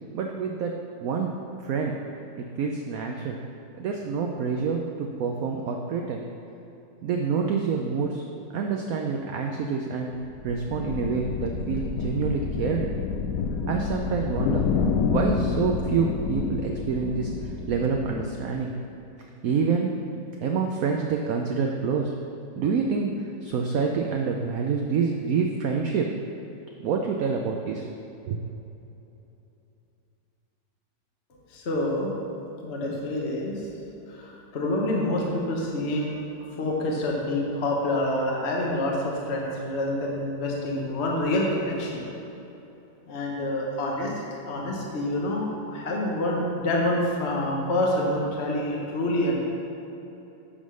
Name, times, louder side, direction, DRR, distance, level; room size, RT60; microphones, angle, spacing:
voice 1, 0.1-1.9 2.4-3.4 3.8-6.2 7.0-8.2 8.5-10.1 10.4-12.9 13.6-14.7 15.1-18.7 19.4-20.0 20.4-22.1 22.6-26.1 26.8-27.9 28.3-28.4, right 5 dB, 70° right, 1 dB, 0.9 m, -27 dB
sound 1, 10.2-18.6, left 5 dB, 70° left, 1.0 m, -29 dB
voice 2, 31.5-32.1 32.6-33.7 34.1-36.1 36.6-42.0 43.1-44.1 44.5-49.4, left 1 dB, 45° left, -2 dB, 1.2 m, -27 dB
10.0 x 3.7 x 6.2 m, 3.0 s
omnidirectional pair, 1.9 m